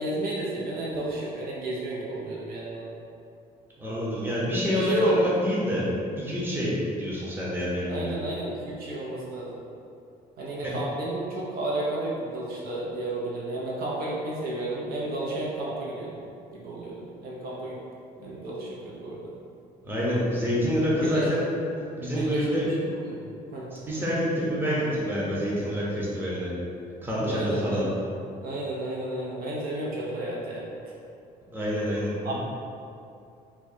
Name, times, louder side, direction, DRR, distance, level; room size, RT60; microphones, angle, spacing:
voice 1, 0.0-2.9 4.7-5.5 7.9-9.6 10.4-16.2 16.5-17.8 18.2-19.3 21.0-21.3 22.1-23.7 27.2-27.9 28.4-30.9 32.2-32.3, right 1 dB, 60° right, -4 dB, 0.7 m, -32 dB
voice 2, 3.8-5.8 6.2-8.1 10.6-10.7 19.8-21.5 22.0-22.7 23.7-26.5 27.0-27.8 31.5-32.3, equal, 10° right, -7 dB, 0.8 m, -27 dB
4.5 x 2.2 x 2.7 m, 2.6 s
cardioid pair, 110°, 17 cm